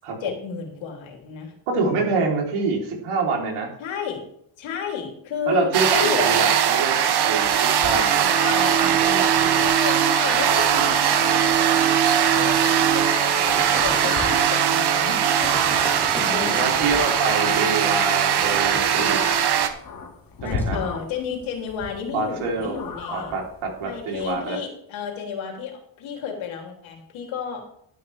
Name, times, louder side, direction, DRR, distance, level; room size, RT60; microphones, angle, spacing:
voice 1, 0.2-1.5 1.9-2.2 3.8-4.2 4.6-6.5 9.6-11.9 12.3-15.5 15.9-16.7 20.4-23.4 23.8-27.6, left 7 dB, 70° left, 2 dB, 3.1 m, -32 dB
voice 2, 1.7-3.7 5.5-9.7 16.2-19.2 20.4-20.8 22.1-22.8 23.1-24.6, right 4 dB, 85° right, 0 dB, 3.6 m, -26 dB
sound 1, 5.7-19.7, right 9 dB, 50° right, 1.2 m, -20 dB
sound 2, 7.4-24.4, left 5 dB, 45° left, 2.0 m, -36 dB
sound 3, 13.4-14.7 15.3-17.4 18.3-19.2 20.5-20.7, left 1 dB, 5° left, 2.3 m, -36 dB
11.5 x 10.0 x 3.4 m, 0.69 s
cardioid pair, 130°, 49 cm